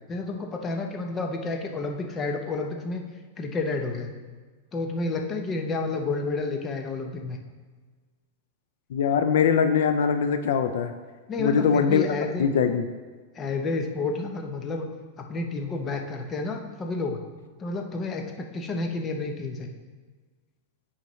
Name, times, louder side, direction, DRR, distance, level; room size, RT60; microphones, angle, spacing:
voice 1, 0.1-3.0 3.4-4.1 4.7-7.4 11.3-12.8 13.3-14.9 15.2-17.2 17.6-19.7, left 3 dB, 20° left, 3 dB, 0.7 m, -30 dB
voice 2, 8.9-10.9 11.4-12.1 12.4-12.8, left 6 dB, 80° left, 9 dB, 0.4 m, -22 dB
10.0 x 4.2 x 3.1 m, 1.4 s
supercardioid pair, 145°, 0 cm